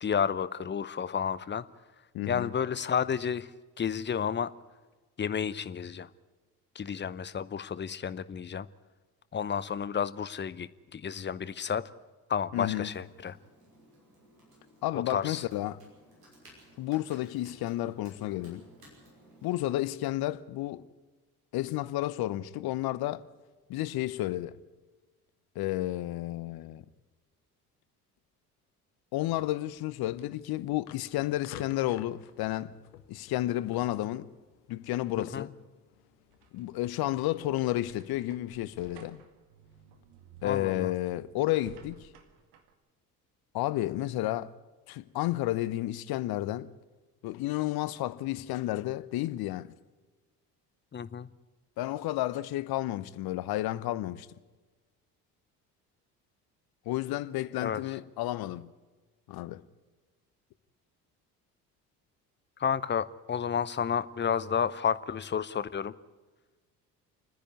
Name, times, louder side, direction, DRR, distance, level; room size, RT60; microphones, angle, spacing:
voice 1, 0.0-1.6 2.3-3.5 3.8-4.5 5.2-6.1 6.7-8.7 9.3-11.8 12.3-13.4 14.9-15.4 35.2-35.5 40.4-40.9 50.9-51.3 57.6-57.8 62.6-65.9, left 7 dB, 25° left, 0.8 m, -31 dB
voice 2, 2.1-2.5 12.5-12.9 14.8-15.8 16.8-18.6 19.4-20.8 21.5-23.2 23.7-24.6 25.5-26.8 29.1-32.7 33.1-34.3 34.7-35.5 36.5-39.2 40.4-42.1 43.5-44.5 44.9-46.7 47.2-49.7 51.8-54.3 56.9-58.7 59.3-59.6, left 15 dB, 55° left, 0.9 m, -31 dB
Computer keyboard, 12.6-19.9, equal, 85° right, 5.9 m, -57 dB
sound 1, 29.3-37.2, left 10 dB, 75° left, 1.2 m, -53 dB
sound 2, 36.0-42.7, right 6 dB, 60° right, 2.1 m, -55 dB
28.5 x 10.0 x 9.7 m
figure-of-eight pair, 55°, 46 cm